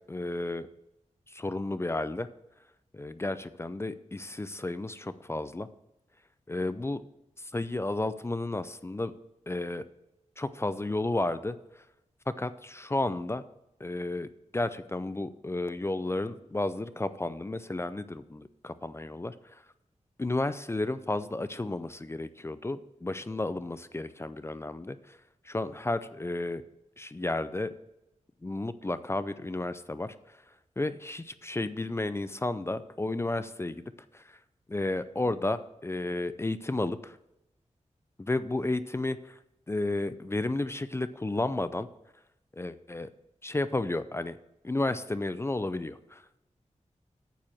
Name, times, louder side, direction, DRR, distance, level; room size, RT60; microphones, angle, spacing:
voice 1, 0.1-0.7 1.3-2.3 2.9-5.7 6.5-7.0 7.4-9.1 9.5-9.8 10.4-11.6 12.3-13.4 13.8-19.6 20.2-25.2 25.4-26.6 27.0-27.7 28.4-30.1 30.8-33.8 34.1-34.4 34.7-37.2 38.2-39.4 39.7-41.9 42.5-43.1 43.4-44.4 44.6-46.4, left 2 dB, 20° left, 13 dB, 0.4 m, -32 dB
9.0 x 4.9 x 7.2 m, 0.87 s
wide cardioid pair, 85°, 12 cm